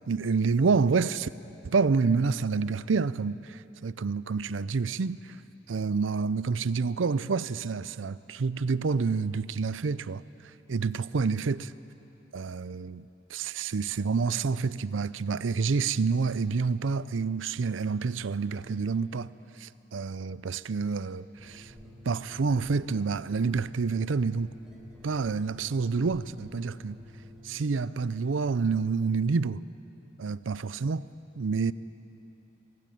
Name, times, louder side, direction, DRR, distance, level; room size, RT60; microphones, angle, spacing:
voice 1, 0.1-1.3 1.6-5.4 5.7-10.2 10.7-11.7 12.3-19.3 19.6-21.7 22.1-24.5 25.0-27.0 27.4-29.6 30.2-31.1 31.4-31.7, right 4 dB, 80° right, 0.5 m, -28 dB
sound 1, 21.3-27.5, left 1 dB, 5° right, 3.4 m, -50 dB
23.0 x 16.0 x 9.3 m
head